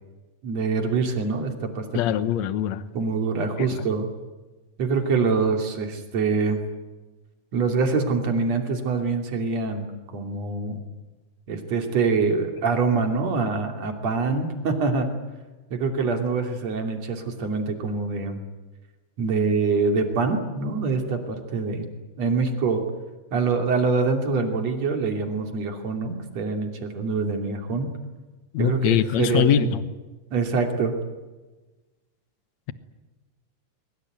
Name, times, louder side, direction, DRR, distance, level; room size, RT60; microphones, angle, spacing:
voice 1, 0.4-1.8 2.9-4.1 4.8-6.6 7.5-9.9 10.1-10.8 11.5-15.1 15.7-18.4 19.2-21.9 22.2-22.8 23.3-28.0 28.6-29.7 30.3-30.9, right 4 dB, 55° right, 4 dB, 3.9 m, -25 dB
voice 2, 1.9-2.8 28.5-29.8, left 10 dB, 65° left, 12 dB, 2.2 m, -22 dB
22.5 x 22.0 x 9.3 m, 1.2 s
omnidirectional pair, 3.8 m